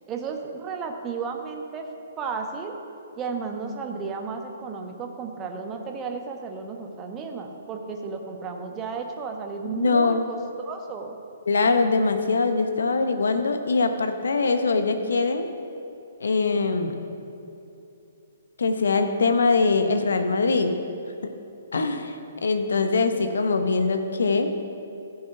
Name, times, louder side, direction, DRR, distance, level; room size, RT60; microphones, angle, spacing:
voice 1, 0.1-1.8 2.2-2.7 3.2-11.2, right 5 dB, 20° right, 3 dB, 1.0 m, -33 dB
voice 2, 9.7-10.2 11.5-15.5 16.2-17.0 18.6-20.8 21.2-21.3 21.7-22.2 22.4-24.5, left 4 dB, 65° left, 7 dB, 1.0 m, -22 dB
14.0 x 5.6 x 5.7 m, 2.8 s
figure-of-eight pair, 125°, 0 cm